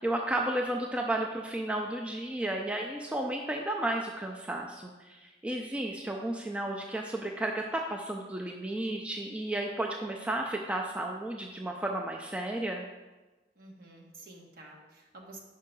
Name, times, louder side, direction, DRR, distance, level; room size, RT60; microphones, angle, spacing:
voice 1, 0.0-12.8, right 1 dB, 5° right, 1 dB, 0.3 m, -33 dB
voice 2, 13.5-15.4, right 2 dB, 55° right, -1 dB, 1.1 m, -50 dB
5.5 x 4.5 x 5.3 m, 1.2 s
head